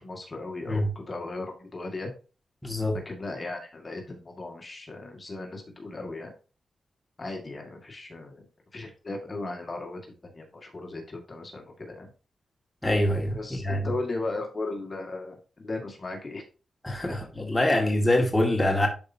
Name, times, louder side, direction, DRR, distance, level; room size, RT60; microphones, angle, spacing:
voice 1, 0.0-2.1 3.1-6.3 7.2-8.5 8.7-12.1 13.3-16.4 17.0-17.2, left 2 dB, 30° left, 1.9 m, -36 dB
voice 2, 2.6-3.0 12.8-13.9 16.8-18.9, left 1 dB, 10° left, 1.9 m, -25 dB
11.5 x 4.9 x 2.7 m
wide cardioid pair, 115°, 0 cm